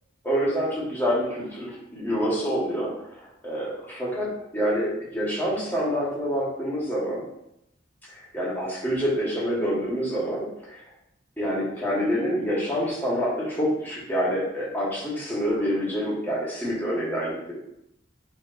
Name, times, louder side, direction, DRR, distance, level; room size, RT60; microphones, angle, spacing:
voice 1, 0.2-7.2 8.1-10.8 11.4-17.5, equal, 10° left, -6 dB, 2.1 m, -27 dB
9.2 x 3.5 x 3.0 m, 0.81 s
head